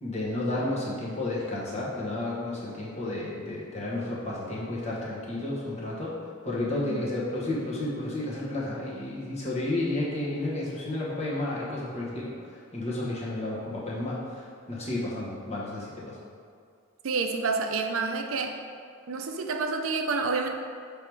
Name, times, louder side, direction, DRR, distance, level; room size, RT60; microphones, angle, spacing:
voice 1, 0.0-6.1 6.4-16.2, left 2 dB, 30° left, -6 dB, 1.2 m, -32 dB
voice 2, 6.7-7.1 17.0-18.6 19.1-20.5, right 4 dB, 70° right, 5 dB, 0.5 m, -29 dB
6.8 x 3.5 x 4.6 m, 2.3 s
head